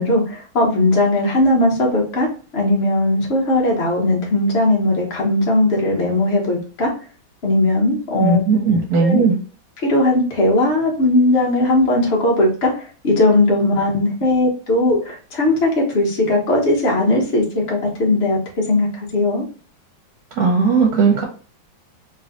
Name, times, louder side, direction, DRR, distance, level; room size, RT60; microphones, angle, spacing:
voice 1, 0.0-2.3 2.5-6.9 7.4-8.4 9.0-9.3 9.8-18.4 18.7-19.5, left 1 dB, 40° left, -1 dB, 1.2 m, -18 dB
voice 2, 8.2-9.4 20.3-21.2, right 4 dB, 60° right, 0 dB, 1.4 m, -16 dB
3.3 x 3.2 x 3.8 m, 0.39 s
omnidirectional pair, 2.1 m